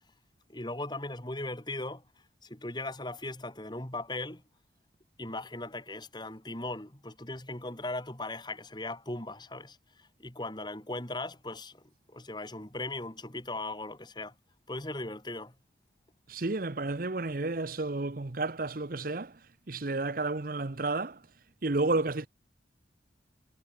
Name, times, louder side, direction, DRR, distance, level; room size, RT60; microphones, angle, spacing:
voice 1, 0.5-2.0 2.4-4.4 5.2-11.8 12.1-14.3 14.7-15.5, left 2 dB, 25° left, 3.1 m, -38 dB
voice 2, 16.3-19.4 19.7-21.2 21.6-22.3, right 2 dB, 50° right, 0.9 m, -31 dB
head